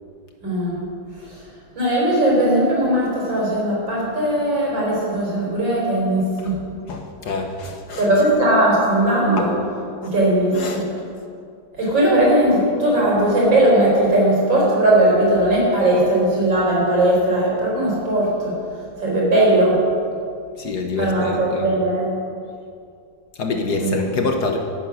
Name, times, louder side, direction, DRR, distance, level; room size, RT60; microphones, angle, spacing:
voice 1, 0.4-0.8 1.3-1.4 1.8-6.6 8.0-9.5 10.0-10.8 11.8-18.5 19.0-19.8 21.0-22.1 23.8-24.0, right 1 dB, 65° right, -4 dB, 5.2 m, -18 dB
voice 2, 6.9-8.0 9.4-9.5 10.0-10.1 10.5-10.8 20.6-21.7 23.4-24.6, left 3 dB, 60° left, 3 dB, 1.6 m, -26 dB
16.5 x 9.0 x 6.3 m, 2.4 s
omnidirectional pair, 2.2 m